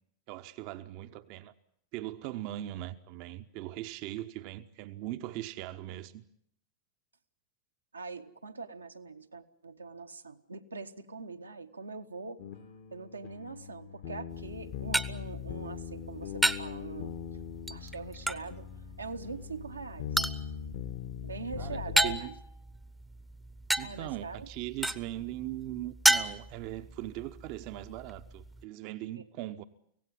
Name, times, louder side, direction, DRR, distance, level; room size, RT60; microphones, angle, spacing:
voice 1, 0.3-1.5 1.9-6.2 21.6-22.3 23.8-29.6, right 14 dB, 45° right, 0.9 m, -40 dB
voice 2, 7.9-12.4 12.9-17.2 17.7-18.7 19.0-20.1 21.2-22.4 23.8-24.5 29.1-29.2, right 4 dB, 80° right, 1.2 m, -42 dB
sound 1, 12.4-22.2, left 9 dB, 50° left, 1.5 m, -41 dB
sound 2, 14.3-28.6, right 1 dB, 5° right, 0.9 m, -34 dB
25.0 x 17.0 x 9.5 m
figure-of-eight pair, 90°, 0 cm